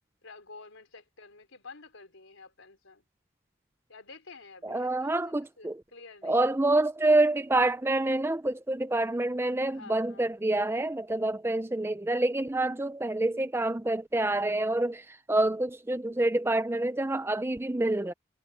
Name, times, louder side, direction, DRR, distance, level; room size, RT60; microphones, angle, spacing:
voice 1, 0.2-3.0 3.9-6.5 9.7-10.3, left 4 dB, 70° left, 3.9 m, -50 dB
voice 2, 4.6-5.8 6.2-18.1, right 2 dB, 10° right, 0.5 m, -27 dB
head